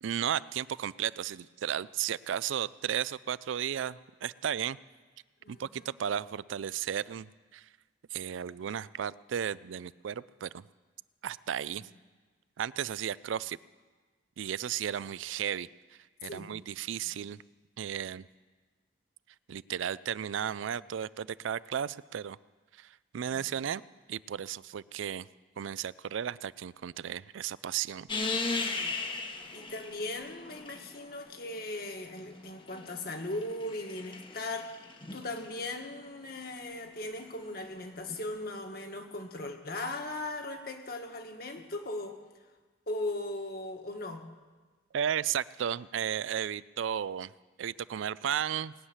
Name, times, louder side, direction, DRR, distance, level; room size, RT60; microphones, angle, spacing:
voice 1, 0.0-4.8 5.5-7.7 8.1-10.7 11.2-11.9 12.6-13.6 14.4-15.7 16.2-17.4 17.8-18.3 19.5-22.4 22.8-23.8 24.1-25.3 25.6-28.1 44.9-47.3 47.6-48.7, right 9 dB, 85° right, 19 dB, 0.4 m, -34 dB
voice 2, 5.4-5.9 16.2-16.5 29.5-34.8 35.1-42.2 42.9-44.3, left 2 dB, 50° left, 4 dB, 1.6 m, -38 dB
sound 1, 28.1-31.2 32.3-35.7 38.1-38.2, left 3 dB, 25° left, 1.0 m, -37 dB
19.5 x 7.4 x 9.8 m, 1.4 s
head